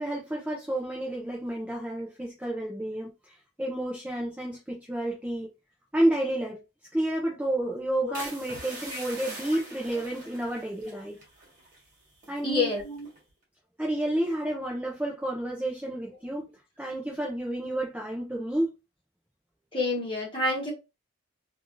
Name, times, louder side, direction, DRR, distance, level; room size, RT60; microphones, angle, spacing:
voice 1, 0.0-5.5 5.9-6.6 6.9-11.2 12.3-12.7 13.8-16.5 16.8-18.7, right 1 dB, 5° right, 0.5 m, -30 dB
sound 1, 8.1-11.9 12.1-12.5 13.0-13.3, right 2 dB, 40° right, 1.4 m, -43 dB
voice 2, 12.4-13.1 19.7-20.7, left 2 dB, 25° left, 1.3 m, -28 dB
3.2 x 2.5 x 2.6 m
head